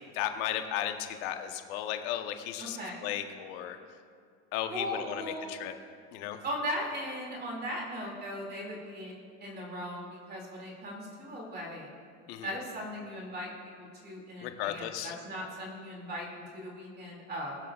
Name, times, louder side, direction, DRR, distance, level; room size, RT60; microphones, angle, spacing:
voice 1, 0.1-3.8 4.5-5.7 6.1-6.4 12.3-12.5 14.4-15.1, left 11 dB, 80° left, 6 dB, 1.1 m, -35 dB
voice 2, 2.6-3.0 4.7-5.6 6.4-9.1 9.4-11.9 12.4-17.6, equal, 30° right, -2 dB, 2.5 m, -38 dB
21.0 x 7.6 x 2.4 m, 2.2 s
supercardioid pair, 115°, 33 cm